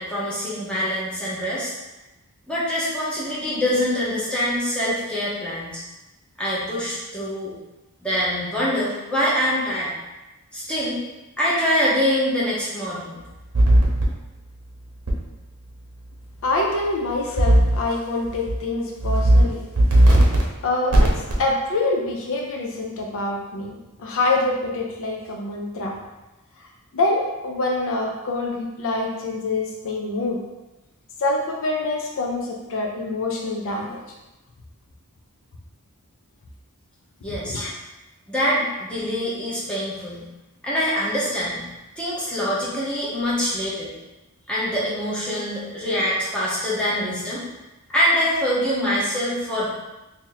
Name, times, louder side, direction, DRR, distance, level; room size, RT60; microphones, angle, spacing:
voice 1, 0.0-1.7 2.5-5.8 6.4-7.5 8.0-9.9 10.5-11.0 11.4-13.2 37.2-37.6 38.3-40.2 40.6-41.6 42.0-43.9 44.5-47.4 47.9-49.7, equal, 5° left, -8 dB, 1.0 m, -24 dB
sound 1, 13.5-14.0 15.1-15.2 17.4-17.8 18.3-18.5 19.0-19.4 19.8-20.4 20.9-21.4, right 1 dB, 80° right, 0.8 m, -16 dB
voice 2, 16.4-19.7 20.0-20.1 20.6-26.0 26.6-26.7 26.9-30.4 31.2-34.0 37.4-37.7, left 2 dB, 60° left, 0 dB, 0.5 m, -25 dB
2.8 x 2.7 x 3.8 m, 1.0 s
head